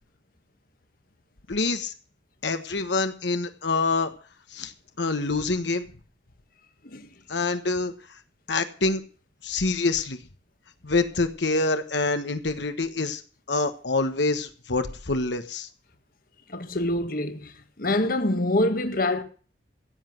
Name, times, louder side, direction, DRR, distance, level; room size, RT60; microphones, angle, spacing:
voice 1, 1.5-1.9 2.4-4.1 4.5-4.7 5.0-5.9 7.3-7.9 8.5-9.0 9.4-10.2 10.8-13.2 13.5-15.7, left 3 dB, 70° left, 1.3 m, -26 dB
voice 2, 16.5-19.2, left 1 dB, 50° left, 1.5 m, -26 dB
16.0 x 8.2 x 7.8 m
head